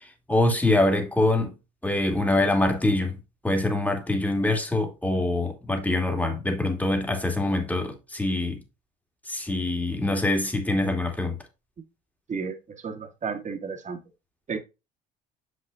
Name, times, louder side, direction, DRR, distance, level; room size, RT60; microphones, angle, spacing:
voice 1, 0.3-1.5 1.8-3.2 3.4-8.6 9.3-11.4, left 2 dB, 10° left, 2.5 m, -24 dB
voice 2, 12.8-14.0 14.5-14.6, right 5 dB, 40° right, 2.1 m, -32 dB
7.3 x 6.5 x 2.6 m
hypercardioid pair, 70°, 20 cm